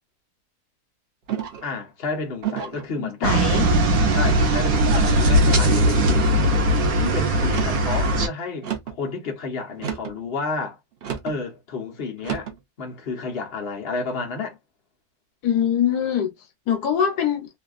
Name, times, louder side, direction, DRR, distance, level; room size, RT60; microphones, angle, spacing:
sound 1, 1.3-1.8 2.4-2.9 3.5-4.0 4.8-5.2 5.8-6.2 7.4-7.9 8.6-9.0 9.8-10.2 11.0-11.4 12.2-12.6, right 8 dB, 55° right, 0.8 m, -32 dB
voice 1, 1.6-3.4 4.1-6.5 6.9-10.8 11.2-12.5 12.8-14.6, left 4 dB, 45° left, 1.1 m, -31 dB
voice 2, 3.0-3.7 15.4-16.3 16.7-17.5, left 8 dB, 85° left, 1.3 m, -23 dB
sound 2, 3.2-8.3, right 1 dB, 70° right, 1.3 m, -19 dB
3.2 x 2.3 x 2.4 m
omnidirectional pair, 1.6 m